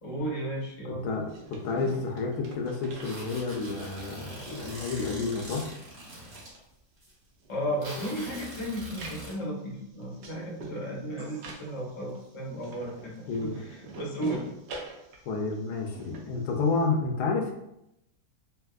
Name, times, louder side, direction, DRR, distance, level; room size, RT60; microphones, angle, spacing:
voice 1, 0.0-1.1 7.5-14.4, right 1 dB, 35° left, -3 dB, 0.4 m, -34 dB
voice 2, 1.0-5.7 13.3-13.6 15.3-17.5, left 4 dB, 80° left, 2 dB, 1.1 m, -30 dB
sound 1, 1.1-3.7 4.1-5.9 6.2-16.9, right 3 dB, 85° right, 1.2 m, -46 dB
sound 2, 3.0-6.5 7.0-7.1 7.8-9.3, right 1 dB, 45° right, 1.3 m, -43 dB
sound 3, 7.8-8.5 11.2-11.8 12.7-12.8, right 1 dB, 65° right, 0.9 m, -47 dB
3.4 x 2.7 x 2.3 m, 0.84 s
omnidirectional pair, 1.7 m